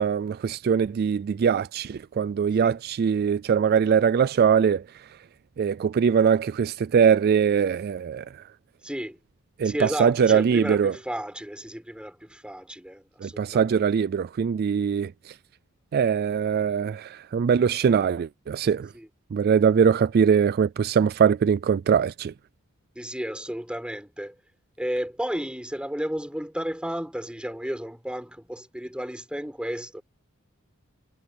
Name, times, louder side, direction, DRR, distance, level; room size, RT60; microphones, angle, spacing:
voice 1, 0.0-4.8 5.6-8.2 9.6-10.9 13.2-15.3 15.9-18.9 19.3-22.3, right 7 dB, 45° right, 0.3 m, -22 dB
voice 2, 8.8-9.2 9.6-13.8 18.9-19.1 22.9-24.3 24.8-30.0, equal, 5° right, 4.7 m, -33 dB
head